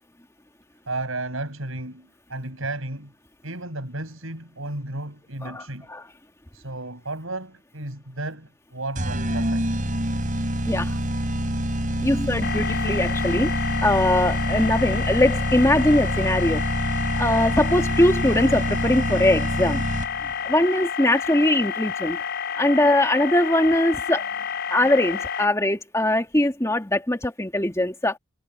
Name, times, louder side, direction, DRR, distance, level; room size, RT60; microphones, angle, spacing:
voice 1, 0.9-3.1 3.4-5.9 6.5-9.7, right 2 dB, 75° right, 7.4 m, -33 dB
voice 2, 5.4-6.0 10.7-10.9 12.0-16.6 17.2-19.9 20.4-22.2 22.6-24.3 24.7-28.2, left 1 dB, 15° left, 2.1 m, -21 dB
sound 1, 9.0-20.3, equal, 40° right, 4.2 m, -26 dB
sound 2, 12.4-25.5, left 7 dB, 55° left, 7.4 m, -30 dB
head